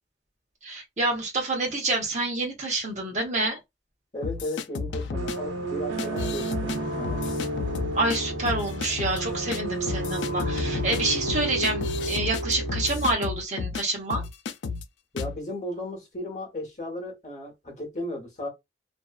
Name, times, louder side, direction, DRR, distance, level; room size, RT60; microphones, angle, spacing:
voice 1, 0.6-3.6 7.9-14.2, right 2 dB, 40° right, 0.8 m, -27 dB
voice 2, 4.1-7.3 15.1-18.5, left 1 dB, 40° left, 1.0 m, -35 dB
sound 1, 4.2-5.4 6.0-6.8 7.0-8.2 8.5-9.2 9.5-9.6 9.9-13.8 14.1-14.9 15.2-15.4, left 5 dB, 85° left, 0.4 m, -32 dB
sound 2, 5.1-13.1, right 1 dB, 90° right, 0.7 m, -31 dB
2.6 x 2.3 x 2.3 m
head